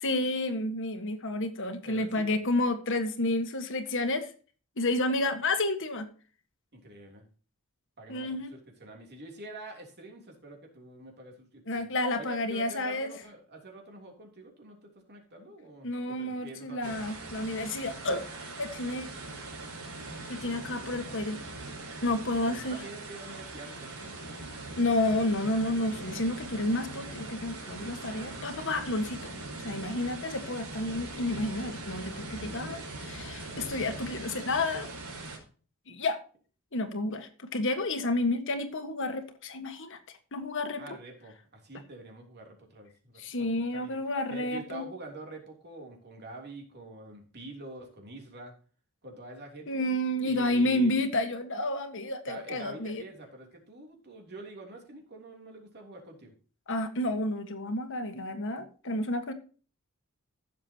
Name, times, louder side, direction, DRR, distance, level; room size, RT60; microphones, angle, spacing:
voice 1, 0.0-4.3 4.8-6.1 8.1-8.5 11.7-13.1 15.8-18.3 18.6-19.1 20.3-21.4 22.0-22.8 24.8-29.3 29.6-34.9 35.9-36.2 36.7-40.0 40.3-41.0 43.2-44.8 49.7-53.0 56.7-59.3, left 2 dB, 60° left, 8 dB, 1.6 m, -30 dB
voice 2, 1.8-2.4 6.7-7.3 8.0-11.9 12.2-17.1 20.8-21.1 22.5-24.9 28.1-29.4 40.8-44.0 44.3-48.5 49.0-49.8 50.2-50.9 52.2-56.3, right 2 dB, 50° right, 2 dB, 3.2 m, -46 dB
sound 1, 16.8-35.4, right 2 dB, 80° right, 4.8 m, -41 dB
15.5 x 7.3 x 2.9 m, 0.39 s
head